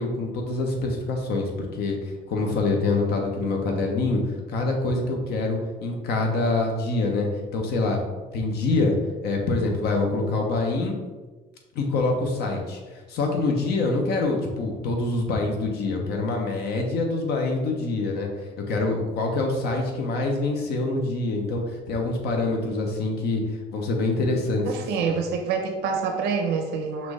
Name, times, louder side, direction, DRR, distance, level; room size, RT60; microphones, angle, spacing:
voice 1, 0.0-1.5 1.8-2.0 2.3-4.2 4.5-7.3 7.5-8.0 8.3-8.9 9.2-11.0 11.7-12.8 13.1-18.3 18.7-23.4 23.7-24.7 25.0-25.2, left 3 dB, 75° left, 2 dB, 1.0 m, -25 dB
voice 2, 24.6-27.1, right 5 dB, 90° right, 3 dB, 0.9 m, -26 dB
5.8 x 2.7 x 3.3 m, 1.3 s
cardioid pair, 110°, 17 cm